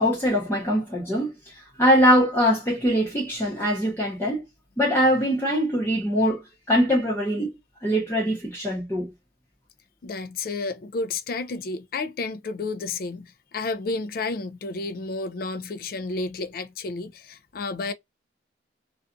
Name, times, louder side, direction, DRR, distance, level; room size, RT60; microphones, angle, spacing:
voice 1, 0.0-4.5 4.8-7.5 7.8-9.1, equal, 15° left, 0.7 m, -22 dB
voice 2, 10.0-17.9, left 3 dB, 50° left, 0.4 m, -31 dB
2.5 x 2.3 x 2.2 m
head